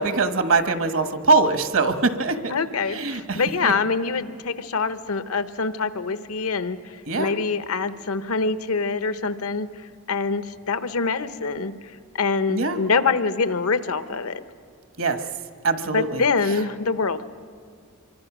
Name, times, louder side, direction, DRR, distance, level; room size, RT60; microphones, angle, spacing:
voice 1, 0.0-2.5 2.9-3.7 7.1-7.3 12.5-12.8 15.0-15.2 15.6-16.6, right 3 dB, 65° right, 8 dB, 1.3 m, -23 dB
voice 2, 2.5-6.8 7.2-9.7 10.1-11.7 12.1-14.4 15.9-17.2, left 4 dB, 75° left, 12 dB, 0.9 m, -25 dB
26.0 x 24.0 x 6.0 m, 2.3 s
head